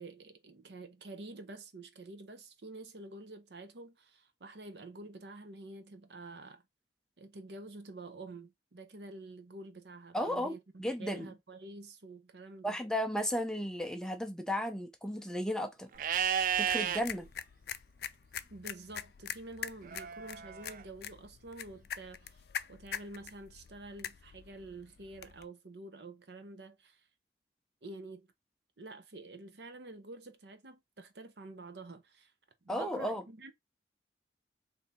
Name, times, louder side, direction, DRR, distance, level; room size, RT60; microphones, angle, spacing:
voice 1, 0.0-6.6 7.2-12.8 18.5-22.4 22.7-27.1 27.8-28.3 28.8-32.3 32.6-33.5, right 2 dB, 70° right, 0.8 m, -48 dB
voice 2, 10.1-11.3 12.6-15.9 16.6-17.3 32.7-33.2, equal, 5° left, 0.5 m, -34 dB
sound 1, 15.9-25.4, left 8 dB, 60° left, 0.4 m, -45 dB
Livestock farm animals working animals, 16.0-17.0 19.9-20.8, right 9 dB, 50° right, 0.3 m, -32 dB
3.4 x 2.7 x 4.1 m
head